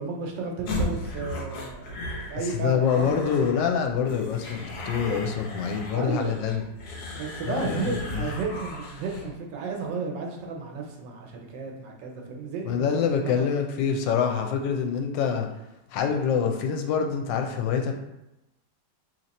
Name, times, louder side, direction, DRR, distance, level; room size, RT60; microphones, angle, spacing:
voice 1, 0.0-2.0 2.3-3.5 5.9-6.5 7.1-12.9 13.2-13.4, right 4 dB, 85° right, 2 dB, 1.4 m, -33 dB
sound 1, 0.7-9.3, left 1 dB, 70° left, 1.2 m, -36 dB
voice 2, 2.6-6.6 7.4-7.8 8.1-8.2 12.7-15.5 15.9-17.9, left 7 dB, 85° left, 4 dB, 1.3 m, -25 dB
3.0 x 2.9 x 4.0 m, 0.92 s
omnidirectional pair, 1.9 m